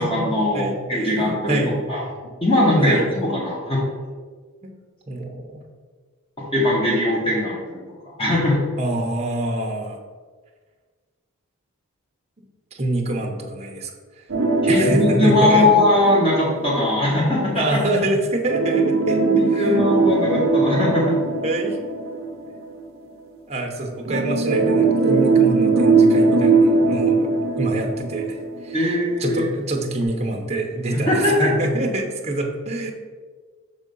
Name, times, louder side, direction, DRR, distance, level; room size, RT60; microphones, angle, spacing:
voice 1, 0.0-1.6 1.9-2.0 2.4-3.8 6.5-7.8 8.2-8.6 14.7-17.8 19.1-21.2 28.7-29.5 31.1-31.5, left 1 dB, 25° left, -5 dB, 1.3 m, -20 dB
voice 2, 0.5-1.9 2.8-3.1 4.6-4.7 5.1-5.6 8.8-10.0 12.7-13.9 14.2-14.3 14.7-15.9 17.5-19.8 21.4-21.8 23.5-27.3 27.6-32.9, right 1 dB, 30° right, 1 dB, 0.8 m, -26 dB
sound 1, 14.3-17.0 18.5-22.8 24.1-29.0 29.3-29.4 30.0-30.1, right 3 dB, 60° right, 0.7 m, -20 dB
6.4 x 3.7 x 5.3 m, 1.5 s
head